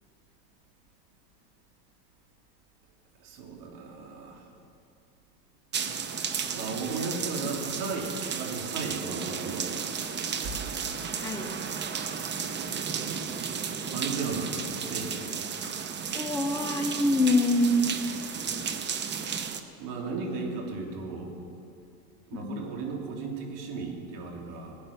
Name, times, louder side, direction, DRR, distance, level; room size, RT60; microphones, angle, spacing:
voice 1, 3.2-4.4 6.0-6.1 6.5-9.9 10.4-10.6 13.9-15.1 19.8-21.4 22.3-24.8, right 4 dB, 55° right, 0 dB, 3.4 m, -35 dB
sound 1, 5.7-19.6, right 6 dB, 20° right, 1.0 m, -33 dB
voice 2, 11.2-11.5 16.1-17.9 22.3-22.7, left 1 dB, 5° left, 3 dB, 0.7 m, -25 dB
18.0 x 8.7 x 7.1 m, 2.4 s
hypercardioid pair, 105°, 48 cm